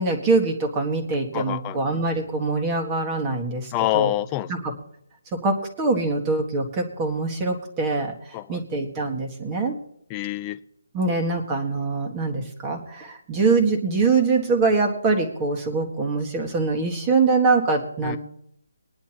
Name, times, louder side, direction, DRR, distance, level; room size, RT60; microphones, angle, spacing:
voice 1, 0.0-4.1 4.5-4.6 5.3-8.1 8.5-9.7 10.9-18.2, right 3 dB, 15° right, 2 dB, 1.6 m, -23 dB
voice 2, 1.3-1.8 3.7-4.5 8.3-8.6 10.1-10.6 18.0-18.2, left 16 dB, 15° left, 10 dB, 0.4 m, -26 dB
22.0 x 10.5 x 3.0 m, 0.74 s
hypercardioid pair, 175°, 0 cm